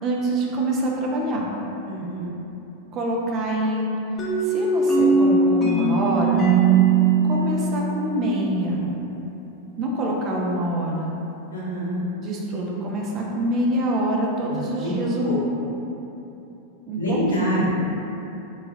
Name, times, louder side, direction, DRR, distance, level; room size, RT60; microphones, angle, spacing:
voice 1, 0.0-1.5 2.9-3.9 4.4-6.5 7.2-8.8 9.8-11.1 12.2-15.3 16.9-17.6, right 1 dB, 35° right, -2 dB, 0.4 m, -25 dB
voice 2, 1.8-2.3 11.5-12.0 14.5-14.9 15.2-15.4 17.0-17.7, equal, 75° left, -7 dB, 0.7 m, -26 dB
sound 1, 4.2-8.9, right 4 dB, 20° left, 0.5 m, -20 dB
3.0 x 2.3 x 2.7 m, 3.0 s
figure-of-eight pair, 90°, 0 cm